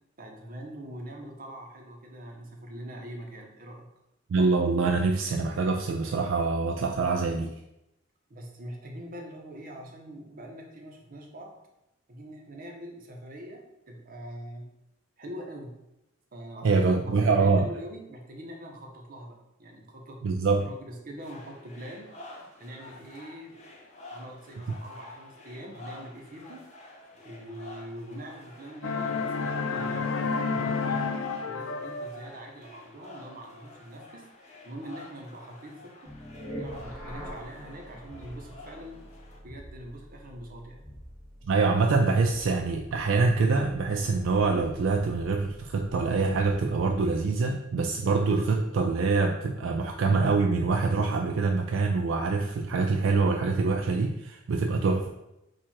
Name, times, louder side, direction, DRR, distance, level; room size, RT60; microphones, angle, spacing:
voice 1, 0.2-3.9 8.3-11.6 12.1-14.7 15.2-15.8 16.3-20.2 20.6-23.5 24.1-26.7 27.2-31.1 31.4-36.1 36.5-39.0 39.4-40.8, right 1 dB, 45° right, 1 dB, 0.8 m, -43 dB
voice 2, 4.3-7.5 16.6-17.7 20.2-20.7 41.4-55.1, right 4 dB, 70° right, 3 dB, 0.3 m, -25 dB
sound 1, 21.2-39.4, left 2 dB, 35° left, 0.7 m, -49 dB
sound 2, 28.8-32.1, left 4 dB, 90° left, 0.5 m, -30 dB
sound 3, 36.0-47.2, equal, 10° left, 1.1 m, -45 dB
4.5 x 2.4 x 4.3 m, 0.88 s
head